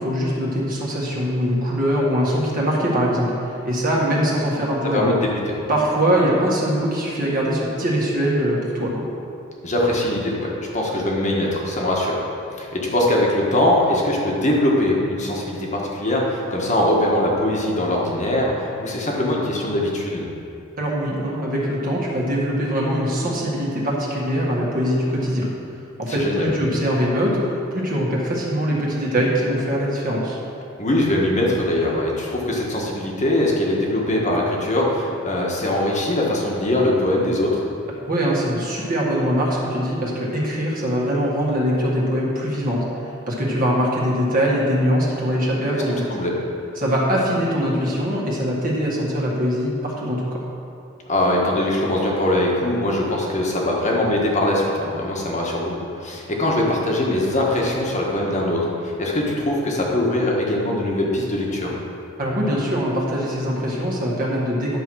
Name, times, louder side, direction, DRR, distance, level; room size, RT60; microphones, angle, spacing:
voice 1, 0.0-5.1 5.7-9.1 20.8-25.5 26.0-30.4 38.1-42.8 43.3-46.0 46.8-50.4 62.2-64.8, equal, 45° right, -5 dB, 1.7 m, -22 dB
voice 2, 4.9-5.5 9.6-12.2 12.6-20.2 26.1-26.5 30.8-37.6 45.9-46.3 51.1-61.7, left 1 dB, 35° left, -2 dB, 1.5 m, -22 dB
11.0 x 4.6 x 6.3 m, 2.7 s
head